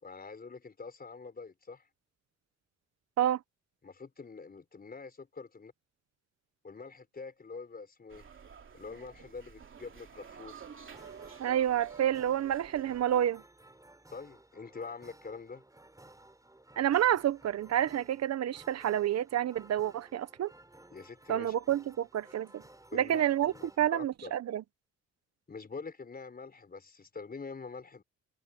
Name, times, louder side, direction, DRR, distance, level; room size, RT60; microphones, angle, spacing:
voice 1, 0.0-1.9 3.8-5.7 6.6-8.2 8.7-10.7 14.1-15.6 20.9-21.5 22.9-24.3 25.5-28.0, left 4 dB, 30° left, 4.5 m, -45 dB
sound 1, 8.1-13.2, right 7 dB, 40° right, 2.8 m, -50 dB
sound 2, 10.9-23.8, right 1 dB, 10° right, 5.6 m, -57 dB
voice 2, 11.4-13.4 16.8-20.5 21.3-22.6 22.9-24.6, right 11 dB, 55° right, 1.0 m, -29 dB
cardioid pair, 90°, 30 cm